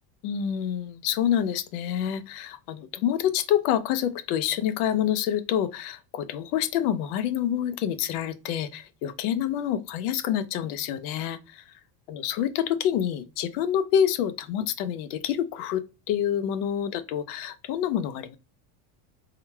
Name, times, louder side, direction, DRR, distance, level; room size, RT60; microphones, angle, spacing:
voice 1, 0.2-11.6 12.1-18.4, left 10 dB, 85° left, 0.7 m, -27 dB
3.8 x 2.3 x 4.3 m
cardioid pair, 165°, 44 cm